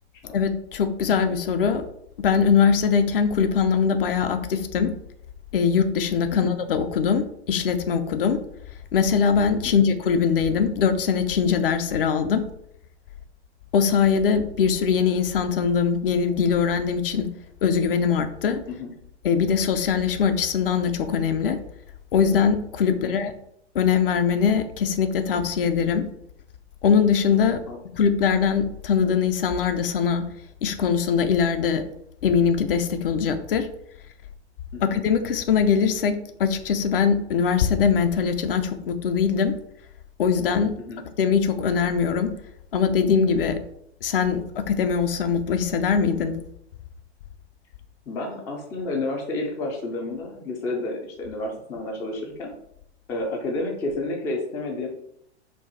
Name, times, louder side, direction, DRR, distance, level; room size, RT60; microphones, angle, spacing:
voice 1, 0.3-1.9 2.2-4.9 5.5-8.4 8.9-12.4 13.7-17.3 17.6-18.6 19.2-21.6 22.1-23.3 23.7-26.0 26.8-27.6 27.9-30.3 30.6-31.8 32.2-33.7 34.8-39.5 40.2-40.7 41.2-42.3 42.7-43.6 44.0-46.4, left 6 dB, 55° left, 8 dB, 0.6 m, -22 dB
voice 2, 48.1-52.5 53.1-54.9, left 2 dB, 10° left, 1 dB, 0.3 m, -30 dB
4.5 x 2.4 x 4.0 m, 0.72 s
figure-of-eight pair, 100°, 34 cm